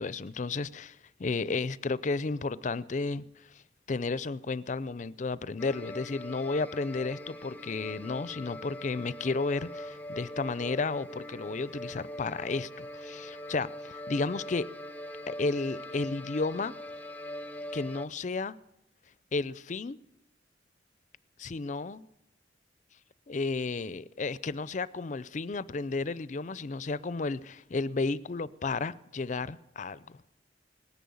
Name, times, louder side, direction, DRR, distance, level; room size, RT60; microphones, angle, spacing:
voice 1, 0.0-3.6 3.9-14.7 15.3-16.7 17.7-18.5 19.3-20.0 21.4-22.0 23.3-30.2, left 3 dB, 45° left, 0.5 m, -33 dB
sound 1, 5.6-18.1, left 1 dB, 10° left, 0.7 m, -42 dB
19.0 x 10.5 x 7.0 m
head